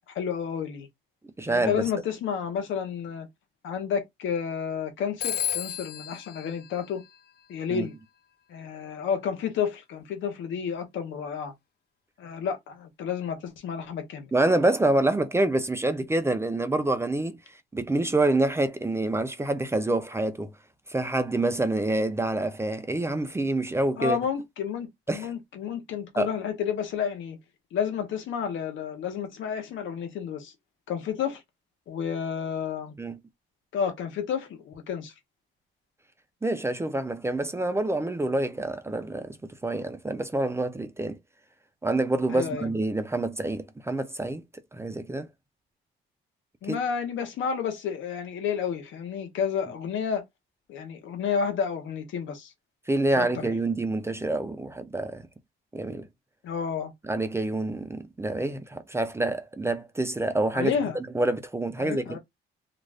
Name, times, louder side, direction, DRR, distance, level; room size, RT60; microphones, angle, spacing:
voice 1, 0.1-0.9 1.5-3.3 3.6-7.0 7.5-7.9 8.5-11.5 12.2-14.3 24.0-27.4 27.7-30.5 30.9-31.4 31.9-32.9 33.7-35.1 42.3-42.7 46.6-50.2 50.7-52.5 53.1-53.6 56.4-56.9 60.5-61.0 61.8-62.2, left 7 dB, 75° left, 0.9 m, -31 dB
voice 2, 1.4-1.7 7.7-7.9 14.3-17.4 17.7-20.5 20.9-24.2 25.1-25.3 26.2-26.3 33.0-33.2 36.4-39.4 39.6-41.2 41.8-44.4 44.7-45.3 46.7-46.8 52.9-55.2 55.7-56.1 57.1-62.2, right 2 dB, 15° right, 0.4 m, -27 dB
Telephone, 5.2-7.7, left 9 dB, 55° left, 0.4 m, -34 dB
2.5 x 2.3 x 3.3 m
cardioid pair, 90°, 20 cm